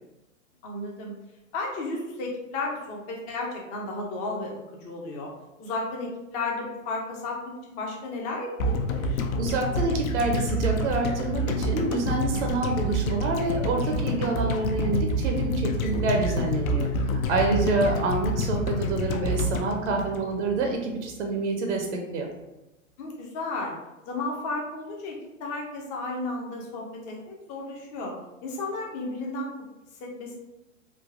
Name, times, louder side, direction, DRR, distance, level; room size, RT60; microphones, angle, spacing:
voice 1, 0.6-1.1 1.5-4.5 4.8-5.3 5.6-7.4 7.7-9.2 17.7-17.9 23.0-23.7 24.1-28.1 28.4-29.5 30.0-30.4, left 2 dB, 20° left, -1 dB, 0.3 m, -33 dB
sound 1, 8.6-20.8 21.1-21.2, left 1 dB, 85° left, 0.5 m, -28 dB
voice 2, 9.4-22.3, right 3 dB, 60° right, 2 dB, 0.6 m, -27 dB
3.2 x 2.1 x 2.4 m, 0.96 s
hypercardioid pair, 115°, 40 cm